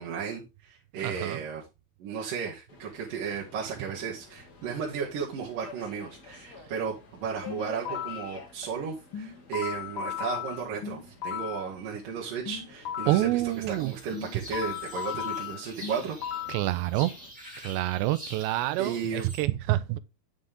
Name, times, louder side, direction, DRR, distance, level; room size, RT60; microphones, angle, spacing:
voice 1, 0.0-1.6 2.0-16.4 18.8-19.3, right 6 dB, 55° right, 3.4 m, -34 dB
voice 2, 1.0-1.4 13.1-13.9 16.5-17.1 17.6-20.0, right 16 dB, 85° right, 2.9 m, -27 dB
Subway metro underground, 2.7-17.3, left 4 dB, 45° left, 1.2 m, -51 dB
sound 1, 7.5-8.3 9.1-11.7 12.5-13.3 14.1-16.7, left 10 dB, 90° left, 1.0 m, -35 dB
sound 2, 13.5-19.4, equal, 10° right, 5.0 m, -47 dB
9.8 x 7.6 x 3.8 m
omnidirectional pair, 5.0 m